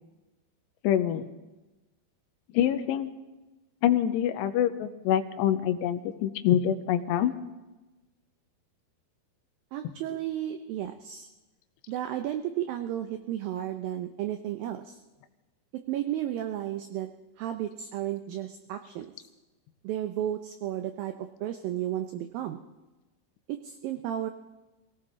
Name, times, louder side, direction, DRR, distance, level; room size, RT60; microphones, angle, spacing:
voice 1, 0.8-1.3 2.5-3.1 3.8-7.3, left 10 dB, 80° left, 9 dB, 2.9 m, -25 dB
voice 2, 9.7-11.3 11.9-15.0 15.7-17.1 17.4-19.1 19.8-22.6 23.5-24.3, right 12 dB, 85° right, 7 dB, 2.0 m, -33 dB
22.5 x 17.0 x 3.7 m, 1.1 s
omnidirectional pair, 5.0 m